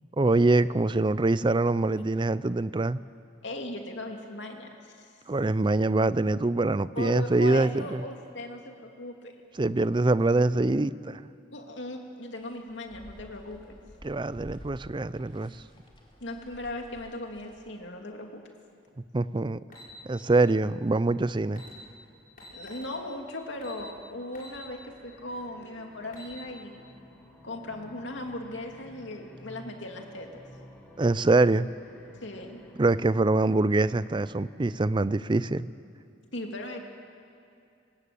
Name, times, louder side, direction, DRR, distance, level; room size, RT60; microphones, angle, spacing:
voice 1, 0.2-3.0 5.3-8.0 9.6-11.3 14.0-15.5 19.1-19.6 20.1-21.6 31.0-31.7 32.8-35.7, right 2 dB, 25° right, 16 dB, 0.5 m, -24 dB
voice 2, 3.4-5.1 7.0-9.3 11.5-13.6 16.2-18.5 20.2-20.3 22.5-26.8 27.4-30.4 32.2-32.6 36.3-36.8, left 1 dB, 65° left, 3 dB, 2.7 m, -38 dB
sound 1, 12.3-17.8, equal, 25° left, 3.1 m, -51 dB
sound 2, 19.7-19.9 21.1-21.2 21.5-21.7 22.4-22.9 23.6-23.8 24.3-24.6 25.0-25.1 25.9-26.3, left 2 dB, 45° left, 6.6 m, -47 dB
sound 3, 24.5-35.0, equal, 10° left, 3.9 m, -53 dB
23.5 x 20.0 x 8.6 m, 2.5 s
head